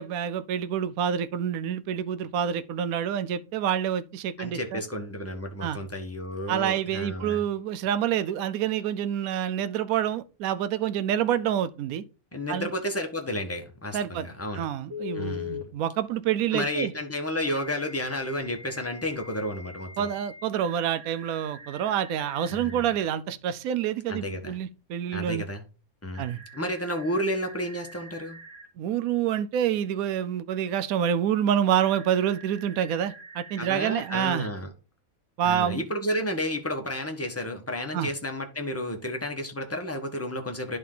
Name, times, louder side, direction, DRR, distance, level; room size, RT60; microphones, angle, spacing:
voice 1, 0.0-4.8 5.6-5.8 6.5-12.0 12.5-12.7 13.9-14.3 14.5-16.9 20.0-25.4 26.2-26.4 28.8-34.5 35.4-35.8 37.9-38.1, right 9 dB, 80° right, 1.0 m, -27 dB
voice 2, 4.4-7.4 12.3-14.7 15.1-15.7 16.5-20.1 22.5-22.9 24.1-24.5 25.1-25.6 26.0-26.2 26.5-28.4 33.6-34.7 35.4-40.8, left 1 dB, 10° left, 1.0 m, -31 dB
Telephone, 14.9-15.6 17.5-23.0 26.1-28.7 31.8-34.3, left 3 dB, 55° right, 2.0 m, -43 dB
11.0 x 3.9 x 3.7 m
omnidirectional pair, 1.5 m